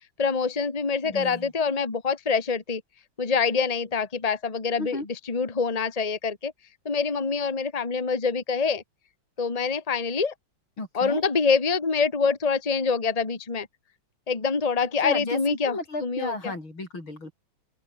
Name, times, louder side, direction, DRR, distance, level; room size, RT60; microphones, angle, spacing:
voice 1, 0.2-2.8 3.2-6.5 6.8-8.8 9.4-10.3 10.9-13.7 14.3-16.5, left 5 dB, 20° left, 1.7 m, -25 dB
voice 2, 1.0-1.5 4.8-5.1 10.8-11.2 15.0-17.3, left 2 dB, 85° left, 8.5 m, -34 dB
open air
omnidirectional pair, 2.2 m